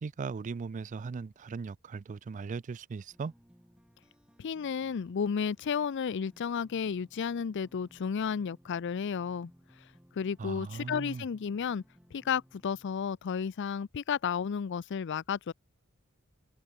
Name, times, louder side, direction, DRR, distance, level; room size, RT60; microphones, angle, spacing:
voice 1, 0.0-3.3 10.4-11.2, right 4 dB, 35° right, 0.3 m, -38 dB
sound 1, 3.1-13.1, equal, 5° right, 7.6 m, -62 dB
voice 2, 4.4-9.5 10.1-11.8 12.1-15.5, left 6 dB, 55° left, 0.4 m, -32 dB
head